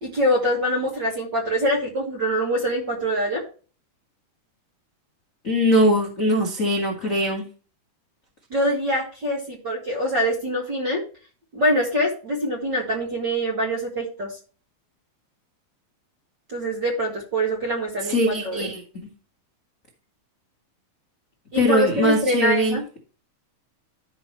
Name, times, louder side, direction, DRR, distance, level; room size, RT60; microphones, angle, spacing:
voice 1, 0.0-3.4 8.5-11.0 11.5-14.3 16.5-18.7 21.5-22.8, equal, 40° right, -1 dB, 1.8 m, -24 dB
voice 2, 5.4-7.4 18.1-18.8 21.6-22.8, equal, 40° left, -2 dB, 1.2 m, -21 dB
12.5 x 6.1 x 3.1 m, 0.37 s
omnidirectional pair, 4.2 m